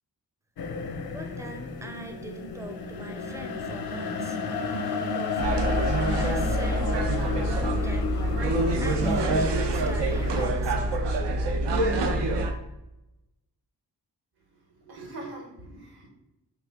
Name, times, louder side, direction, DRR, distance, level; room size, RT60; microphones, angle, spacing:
sound 1, 0.6-10.5, left 5 dB, 65° left, 0.5 m, -32 dB
voice 1, 1.1-7.0 7.3-8.4 8.8-11.5, right 2 dB, 10° right, 4 dB, 0.4 m, -42 dB
sound 2, 5.4-12.5, right 1 dB, 85° right, 0.6 m, -25 dB
voice 2, 14.5-16.1, right 2 dB, 70° right, 0 dB, 1.0 m, -43 dB
3.5 x 2.5 x 3.4 m, 0.94 s
wide cardioid pair, 80°, 41 cm